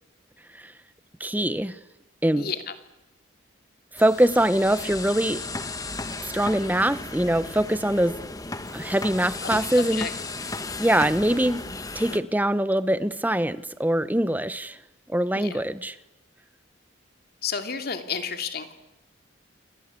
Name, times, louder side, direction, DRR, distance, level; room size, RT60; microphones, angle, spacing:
voice 1, 1.2-1.7 2.2-2.5 3.9-5.4 6.3-8.2 8.7-10.1 10.8-11.6 11.9-14.8 15.1-16.0, right 1 dB, 10° right, 14 dB, 1.0 m, -23 dB
voice 2, 2.4-2.7 9.4-9.7 9.9-10.1 15.3-15.6 17.4-18.7, left 6 dB, 50° left, 7 dB, 2.7 m, -31 dB
sound 1, 4.0-12.2, left 3 dB, 20° left, 1.5 m, -35 dB
29.0 x 23.0 x 8.4 m, 0.98 s
head